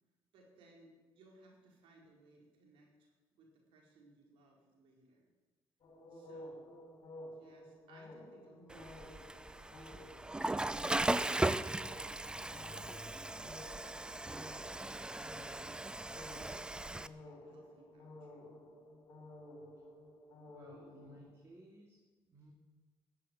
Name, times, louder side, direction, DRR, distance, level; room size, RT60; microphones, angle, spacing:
voice 1, 0.3-5.3 6.1-6.7 7.3-11.4 12.0-12.2 12.5-15.7 16.1-18.5, right 2 dB, 75° right, -1 dB, 4.5 m, -63 dB
sound 1, 5.8-21.3, left 1 dB, 55° left, 3.4 m, -54 dB
Water / Toilet flush, 8.7-17.1, right 2 dB, 10° right, 0.5 m, -38 dB
voice 2, 20.5-22.5, equal, 30° right, 0 dB, 2.5 m, -59 dB
13.5 x 7.5 x 9.4 m, 1.3 s
supercardioid pair, 80°, 9 cm